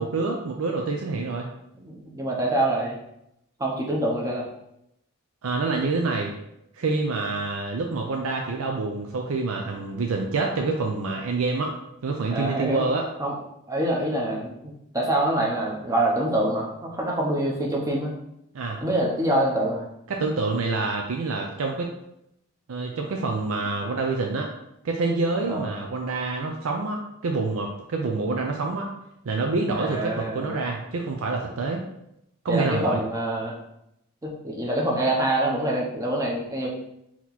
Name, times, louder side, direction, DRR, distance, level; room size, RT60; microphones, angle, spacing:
voice 1, 0.0-1.5 5.4-6.3 6.7-11.7 12.0-13.1 18.5-18.8 20.1-21.9 22.7-24.5 24.8-28.9 29.2-31.8 32.4-33.0, right 3 dB, 80° right, 1 dB, 0.5 m, -27 dB
voice 2, 1.7-3.0 3.6-4.5 12.3-12.8 13.2-13.3 13.7-18.1 18.8-19.9 25.4-25.7 29.8-30.6 32.5-33.6 34.2-36.7, right 1 dB, 15° right, -2 dB, 0.8 m, -25 dB
4.2 x 2.9 x 4.1 m, 0.81 s
head